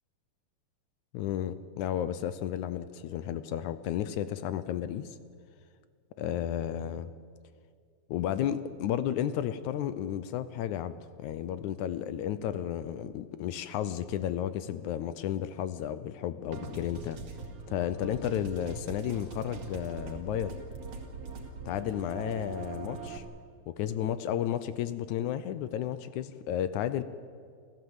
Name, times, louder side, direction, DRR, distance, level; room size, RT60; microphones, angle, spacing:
voice 1, 1.1-5.2 6.2-7.1 8.1-17.2 17.7-20.6 21.7-23.2 23.7-27.0, left 10 dB, 75° left, 13 dB, 2.0 m, -33 dB
sound 1, 16.5-23.2, right 4 dB, 55° right, 3.1 m, -42 dB
27.5 x 15.0 x 8.0 m, 2.1 s
omnidirectional pair, 3.7 m